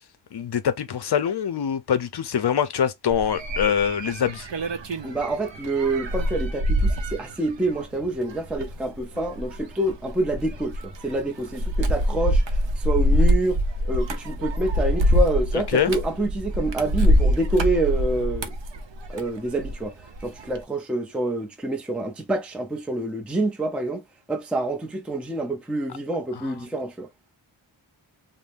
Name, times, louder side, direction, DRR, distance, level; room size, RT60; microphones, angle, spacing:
voice 1, 0.3-4.5 15.7-15.9 26.4-26.5, left 8 dB, 55° left, 0.6 m, -24 dB
sound 1, 3.1-19.8 20.2-20.6, equal, 65° right, 0.7 m, -24 dB
voice 2, 5.0-13.6 13.9-18.5 19.1-20.0 20.2-27.1, right 2 dB, ahead, 0.5 m, -27 dB
2.6 x 2.1 x 3.3 m
wide cardioid pair, 85°, 47 cm